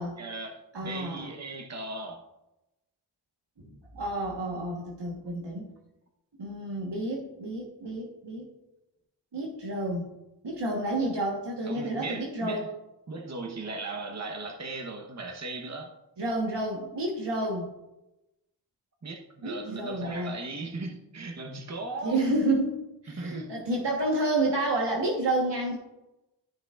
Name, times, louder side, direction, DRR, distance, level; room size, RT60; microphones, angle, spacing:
voice 1, 0.0-2.2 11.6-12.7 13.1-15.9 19.0-22.2 23.1-23.6, right 3 dB, 40° right, 2 dB, 1.1 m, -37 dB
voice 2, 0.7-1.3 3.6-3.7 3.9-5.7 6.4-8.5 9.3-10.1 10.4-12.7 16.2-17.7 19.4-20.3 22.0-22.8 23.0-25.8, right 1 dB, 75° right, -1 dB, 1.3 m, -30 dB
13.0 x 5.8 x 2.4 m, 0.95 s
cardioid pair, 45°, 43 cm